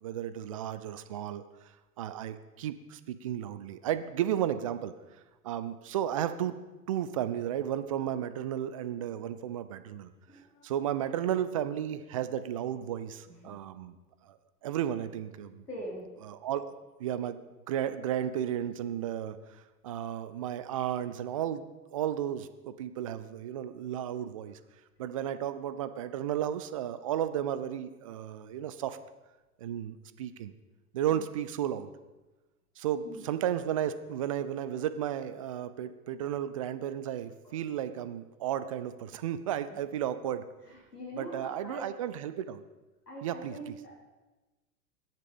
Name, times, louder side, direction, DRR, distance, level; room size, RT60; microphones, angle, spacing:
voice 1, 0.0-1.4 2.0-4.9 5.4-6.6 6.9-10.1 10.6-14.0 14.3-14.4 14.6-15.6 16.2-16.7 17.0-17.4 17.7-24.6 25.0-29.0 29.6-30.5 30.9-31.9 32.8-40.5 41.1-42.6 43.2-43.8, right 10 dB, 25° right, 13 dB, 0.3 m, -33 dB
voice 2, 10.3-10.7 13.3-13.6 15.7-16.1 33.0-33.2 37.4-37.6 40.9-41.9 43.1-43.9, equal, 80° left, -3 dB, 3.3 m, -42 dB
11.5 x 10.5 x 5.3 m, 1.1 s
figure-of-eight pair, 90°, 47 cm